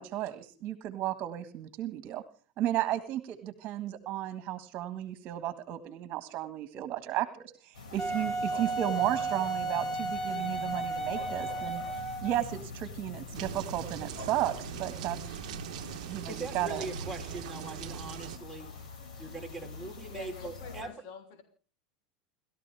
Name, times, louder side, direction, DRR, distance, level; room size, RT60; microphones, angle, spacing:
voice 1, 0.0-2.2 2.6-11.8 12.2-15.2 16.0-16.9, right 13 dB, 45° right, 1.8 m, -34 dB
sound 1, 7.7-20.8, left 3 dB, 90° left, 6.4 m, -44 dB
Wind instrument woodwind instrument, 8.0-12.5, right 3 dB, 20° left, 2.4 m, -33 dB
light thunder, 13.3-18.4, right 14 dB, 80° right, 0.9 m, -41 dB
voice 2, 16.3-18.7 19.2-20.9, right 2 dB, 5° left, 4.2 m, -41 dB
voice 3, 20.1-21.4, left 6 dB, 65° left, 3.3 m, -47 dB
30.0 x 13.5 x 3.5 m
supercardioid pair, 115°, 4 cm